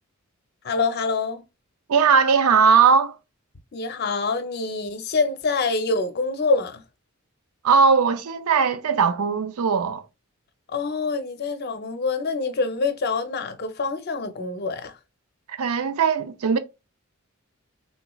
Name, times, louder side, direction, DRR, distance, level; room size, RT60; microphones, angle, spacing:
voice 1, 0.6-1.4 3.7-6.8 10.7-15.0, left 4 dB, 45° left, 0.5 m, -25 dB
voice 2, 1.9-3.1 7.6-10.0 15.5-16.6, right 5 dB, 85° right, 0.5 m, -19 dB
3.5 x 3.0 x 2.3 m
head